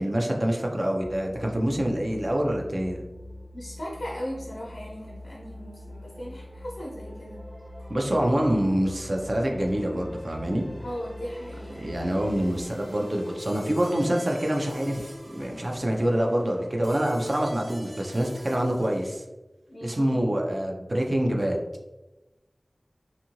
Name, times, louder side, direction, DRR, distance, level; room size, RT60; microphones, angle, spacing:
voice 1, 0.0-3.1 7.9-10.7 11.8-19.2 19.8-21.6, right 1 dB, 50° right, 1 dB, 0.5 m, -26 dB
sound 1, 1.0-12.7, left 1 dB, 10° left, 0.5 m, -44 dB
sound 2, 3.0-19.1, equal, 30° right, 0.9 m, -46 dB
voice 2, 3.5-7.4 10.8-11.9 19.7-20.2, equal, 85° left, -5 dB, 0.6 m, -38 dB
2.7 x 2.5 x 2.9 m, 1.1 s
wide cardioid pair, 45°, 0 cm